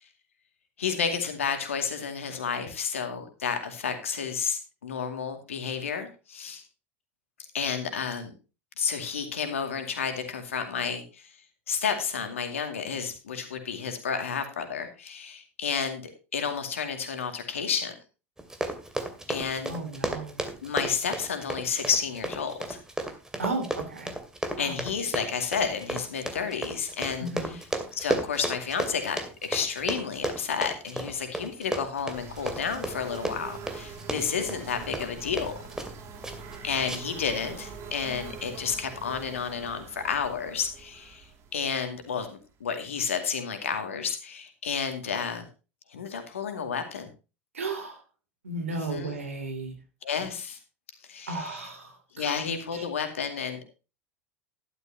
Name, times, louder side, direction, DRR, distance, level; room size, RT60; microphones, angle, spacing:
voice 1, 0.8-6.6 7.5-8.3 8.8-11.3 11.7-17.9 19.3-19.8 20.6-22.8 24.6-27.6 27.9-35.5 36.6-45.5 45.9-47.1 48.7-49.2 50.0-50.6 51.1-51.7 52.1-53.6, left 6 dB, 75° left, 7 dB, 2.3 m, -31 dB
Run, 18.4-36.0 36.2-36.6 36.9-37.2 37.6-37.7, right 2 dB, 10° right, 2.4 m, -34 dB
voice 2, 19.7-20.4 23.4-24.1 24.6-24.7 27.2-27.5 47.5-48.0 48.4-49.8 51.3-52.4 52.7-52.8, right 2 dB, 80° right, 6 dB, 3.0 m, -34 dB
sound 1, 32.1-42.8, right 5 dB, 40° right, 2.5 m, -44 dB
12.0 x 12.0 x 2.9 m, 0.31 s
figure-of-eight pair, 75°, 7 cm